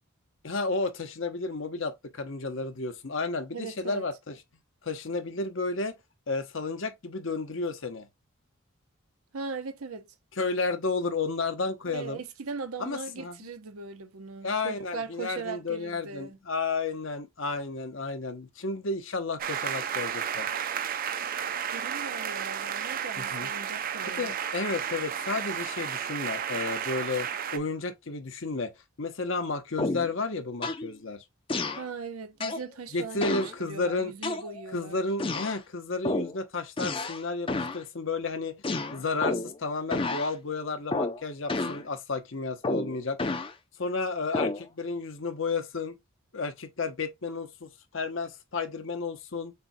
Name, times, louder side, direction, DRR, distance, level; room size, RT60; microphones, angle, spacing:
voice 1, 0.4-4.4 4.8-6.0 6.3-8.1 10.4-12.2 12.8-13.4 14.4-20.5 23.2-23.5 24.0-28.7 29.0-31.2 32.9-34.1 34.7-38.6 38.9-43.4 43.8-46.0 46.3-49.5, left 3 dB, 60° left, 0.9 m, -32 dB
voice 2, 3.5-4.0 9.3-10.1 11.9-16.4 21.7-24.3 31.8-35.0, right 4 dB, 85° right, 0.8 m, -39 dB
sound 1, 19.4-27.6, right 8 dB, 40° right, 0.4 m, -32 dB
sound 2, 29.8-30.1 30.6-30.9 31.5-31.9 32.4-32.7 33.2-33.5 34.2-34.8 35.2-35.6 36.0-36.4 36.8-37.2 37.5-37.8 38.6-39.6 39.9-40.3 40.9-41.2 41.5-41.8 42.6-43.5 44.3-44.6, left 2 dB, 25° left, 0.5 m, -30 dB
6.7 x 2.3 x 2.6 m
head